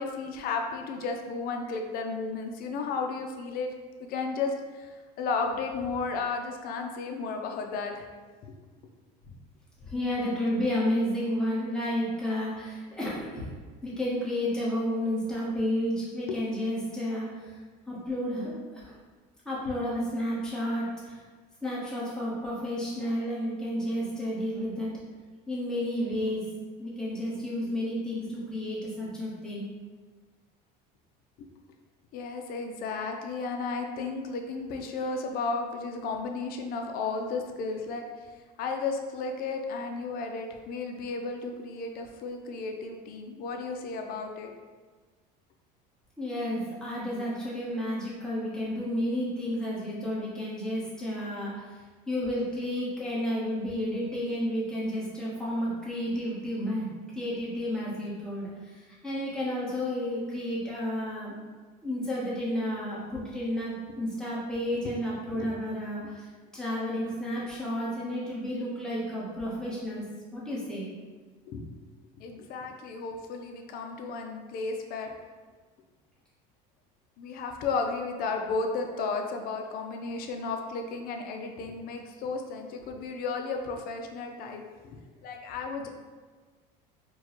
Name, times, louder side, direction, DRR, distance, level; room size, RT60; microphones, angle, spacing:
voice 1, 0.0-3.7 4.1-8.1 16.3-16.4 31.4-31.5 32.1-38.0 38.6-44.5 65.3-65.5 71.5-71.7 72.2-75.1 77.2-84.6 85.2-85.9, left 4 dB, 50° left, 3 dB, 0.5 m, -33 dB
voice 2, 9.8-13.6 13.8-17.5 17.9-18.9 19.4-21.2 21.6-25.0 25.5-29.7 46.2-61.3 61.8-66.3 66.5-70.0 70.3-70.9, equal, 5° left, -7 dB, 1.1 m, -31 dB
4.4 x 2.2 x 3.0 m, 1.4 s
cardioid pair, 130°, 19 cm